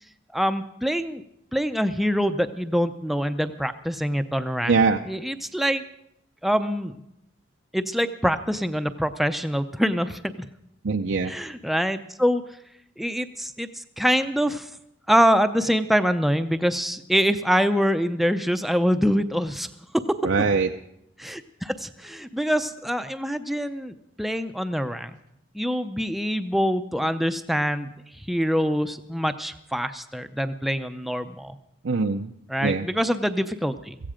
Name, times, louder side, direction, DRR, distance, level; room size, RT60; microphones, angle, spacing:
voice 1, 0.3-1.2 1.5-4.8 5.1-5.8 6.4-6.9 7.7-10.5 11.2-12.4 13.0-14.7 15.1-19.7 19.9-20.2 21.2-25.2 25.5-27.9 28.2-31.6 32.5-34.0, equal, ahead, 9 dB, 0.5 m, -25 dB
voice 2, 4.7-5.0 10.8-11.3 20.2-20.7 31.8-32.3 32.6-32.9, right 4 dB, 75° right, 5 dB, 0.6 m, -22 dB
16.0 x 15.5 x 5.1 m, 0.80 s
head